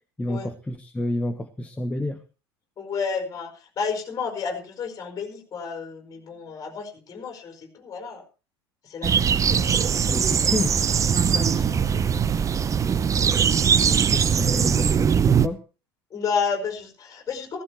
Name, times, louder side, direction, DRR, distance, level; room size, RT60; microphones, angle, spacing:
voice 1, 0.2-2.2 10.1-10.7 13.9-15.6, left 1 dB, 10° left, 7 dB, 1.1 m, -29 dB
voice 2, 2.8-8.2 8.8-10.0 11.3-12.1 16.1-17.6, left 5 dB, 25° left, 5 dB, 5.0 m, -31 dB
sound 1, 9.0-15.5, right 7 dB, 25° right, 0.7 m, -21 dB
15.5 x 15.0 x 3.0 m, 0.33 s
figure-of-eight pair, 70°, 14 cm